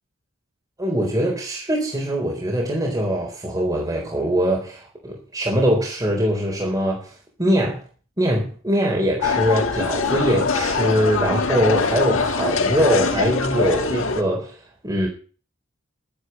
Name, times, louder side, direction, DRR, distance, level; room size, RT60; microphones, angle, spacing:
voice 1, 0.8-7.1 7.4-7.8 8.2-14.6 14.8-15.1, equal, 20° right, 4.0 m, -22 dB
sound 1, 9.2-14.2, left 4 dB, 70° left, 2.0 m, -23 dB
12.0 x 10.0 x 8.0 m
head